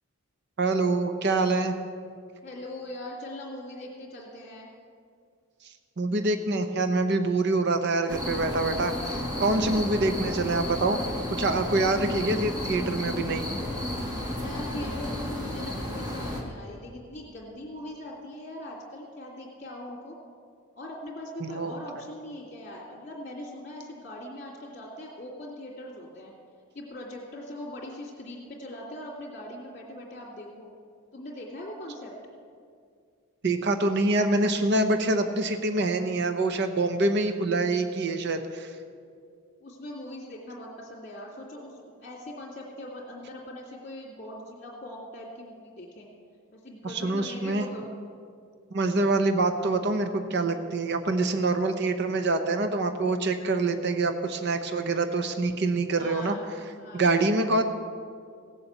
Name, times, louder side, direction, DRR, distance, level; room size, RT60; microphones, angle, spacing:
voice 1, 0.6-1.8 6.0-11.0 11.4-13.5 21.4-21.7 33.4-38.7 46.8-47.7 48.7-56.3 56.9-57.6, right 2 dB, 50° right, 8 dB, 0.7 m, -25 dB
voice 2, 2.4-4.7 14.3-20.2 20.7-26.3 26.7-30.7 31.1-32.1 39.6-46.1 46.5-47.9 55.9-56.5 56.8-57.1, left 1 dB, 35° left, -5 dB, 2.4 m, -41 dB
sound 1, 8.1-16.4, left 1 dB, 20° right, 2.0 m, -32 dB
17.0 x 7.0 x 8.0 m, 2.2 s
head